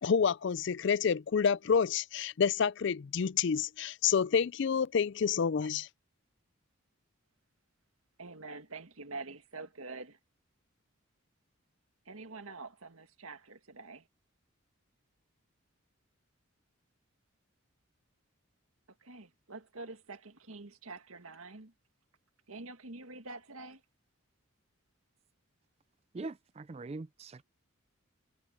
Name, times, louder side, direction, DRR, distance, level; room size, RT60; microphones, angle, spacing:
voice 1, 0.0-5.9, left 6 dB, 55° left, 0.4 m, -28 dB
voice 2, 8.2-10.2 12.1-14.1 19.0-21.7 22.5-23.8, right 3 dB, 80° right, 1.9 m, -46 dB
voice 3, 26.1-27.4, right 3 dB, 30° right, 0.3 m, -42 dB
head